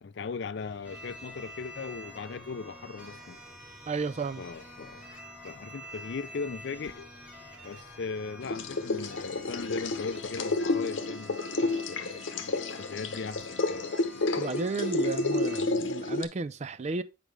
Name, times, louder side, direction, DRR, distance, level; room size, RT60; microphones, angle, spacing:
voice 1, 0.0-3.4 4.4-5.1 5.4-7.1 7.6-13.9, left 4 dB, 60° left, 0.4 m, -38 dB
sound 1, 0.6-10.4, equal, 20° left, 4.7 m, -55 dB
sound 2, 0.8-15.6, equal, 5° right, 1.8 m, -48 dB
voice 2, 3.9-4.4 14.4-17.0, right 3 dB, 35° right, 0.4 m, -33 dB
sound 3, 8.4-16.3, left 2 dB, 85° left, 0.8 m, -31 dB
8.1 x 5.0 x 3.3 m
head